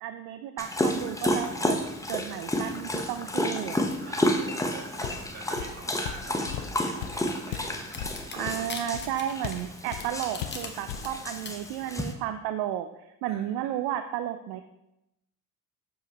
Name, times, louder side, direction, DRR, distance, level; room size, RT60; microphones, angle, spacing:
voice 1, 0.0-1.8 2.1-3.7 8.3-14.6, right 11 dB, 70° right, 9 dB, 0.5 m, -33 dB
Dog, 0.6-12.1, left 1 dB, 10° left, 0.8 m, -31 dB
voice 2, 4.1-8.4 10.9-11.0 13.3-13.7, right 3 dB, 40° right, 0 dB, 2.1 m, -46 dB
Walk footsteps, 5.0-5.3 5.6-9.7 9.9-10.1 10.4-11.1, left 10 dB, 85° left, 0.6 m, -37 dB
sound 1, 7.9-10.7 11.0-11.5, left 4 dB, 25° left, 1.3 m, -39 dB
7.0 x 6.1 x 2.9 m, 0.89 s
hypercardioid pair, 60°, 40 cm